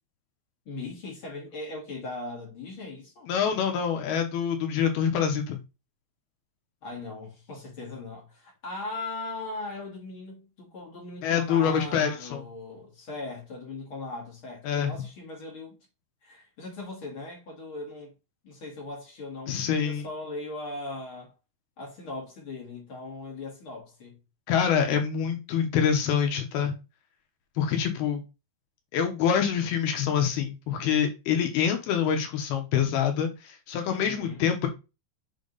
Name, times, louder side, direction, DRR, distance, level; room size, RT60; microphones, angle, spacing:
voice 1, 0.6-3.3 6.8-15.8 16.2-18.1 18.4-21.3 21.8-24.2 33.9-34.4, left 2 dB, 50° left, 1.6 m, -39 dB
voice 2, 3.3-5.6 11.2-12.4 14.6-14.9 19.5-20.1 24.5-26.7 27.6-28.2 28.9-34.7, left 7 dB, 75° left, 2.5 m, -26 dB
7.5 x 3.5 x 3.9 m
omnidirectional pair, 5.4 m